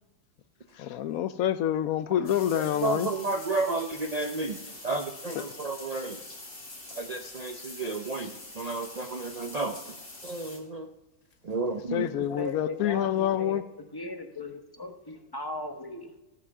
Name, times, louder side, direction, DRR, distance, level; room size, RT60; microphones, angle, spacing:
voice 1, 0.8-3.1 11.6-13.6, left 11 dB, 75° left, 13 dB, 1.1 m, -27 dB
sound 1, 2.2-10.6, left 2 dB, 40° left, 2.7 m, -45 dB
voice 2, 2.6-6.2 7.0-9.8 10.2-10.9 11.4-12.3, right 3 dB, 45° right, 5 dB, 0.5 m, -32 dB
voice 3, 12.3-13.6 13.9-16.2, left 2 dB, 20° left, 5 dB, 1.0 m, -37 dB
14.5 x 6.0 x 6.6 m, 1.0 s
omnidirectional pair, 1.5 m